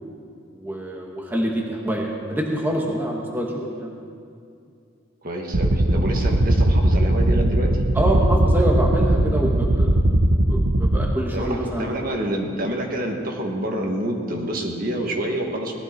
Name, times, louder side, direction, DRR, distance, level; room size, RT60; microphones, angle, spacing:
voice 1, 0.5-4.0 7.9-9.9 10.5-11.9, right 1 dB, 10° right, -1 dB, 1.2 m, -26 dB
voice 2, 5.2-7.8 11.3-15.8, right 1 dB, 45° right, 1 dB, 1.5 m, -27 dB
sound 1, 5.5-11.1, right 1 dB, 65° right, 0.8 m, -19 dB
18.5 x 12.5 x 4.4 m, 2.4 s
head